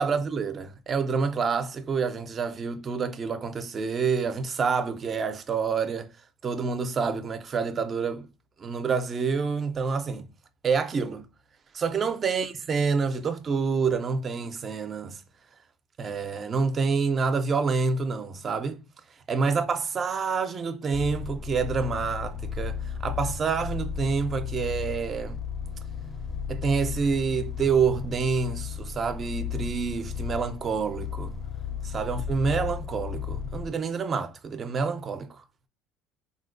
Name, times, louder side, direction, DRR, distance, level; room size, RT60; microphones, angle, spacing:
voice 1, 0.0-6.1 6.4-8.3 8.6-10.2 10.6-11.2 11.7-15.2 16.0-18.8 19.3-25.4 26.5-31.3 31.8-35.4, right 5 dB, 35° right, 0.4 m, -27 dB
sound 1, 20.9-33.7, left 7 dB, 20° left, 0.5 m, -34 dB
3.8 x 2.1 x 2.4 m
supercardioid pair, 105°, 0 cm